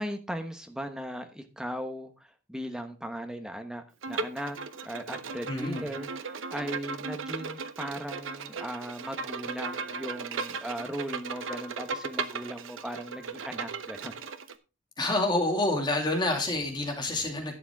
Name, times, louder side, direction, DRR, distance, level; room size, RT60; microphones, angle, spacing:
voice 1, 0.0-14.1, equal, 5° right, 6 dB, 1.1 m, -38 dB
Bowed string instrument, 4.0-14.5, right 4 dB, 80° right, 0.8 m, -37 dB
voice 2, 5.5-5.9 15.0-17.5, left 2 dB, 20° left, 3 dB, 2.3 m, -28 dB
11.5 x 9.1 x 3.5 m, 0.30 s
head